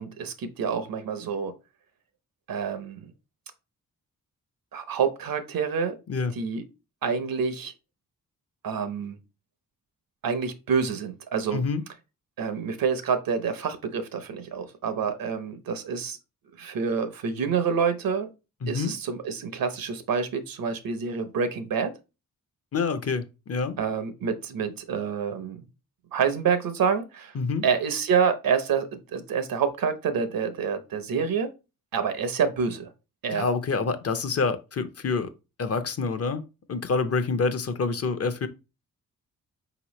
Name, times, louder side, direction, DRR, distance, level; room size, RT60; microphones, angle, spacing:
voice 1, 0.0-1.5 2.5-3.1 4.7-5.9 6.4-6.6 7.0-7.7 8.6-9.2 10.2-11.6 12.4-16.2 16.6-18.3 18.7-21.9 23.8-25.6 26.1-27.3 27.6-31.5 31.9-32.9 33.2-33.5, right 6 dB, 80° right, 0.8 m, -27 dB
voice 2, 11.5-11.8 18.6-18.9 22.7-23.8 27.3-27.7 33.3-35.3 35.6-36.4 36.7-38.5, left 4 dB, 45° left, 0.6 m, -27 dB
4.7 x 3.0 x 3.0 m
cardioid pair, 80°, 34 cm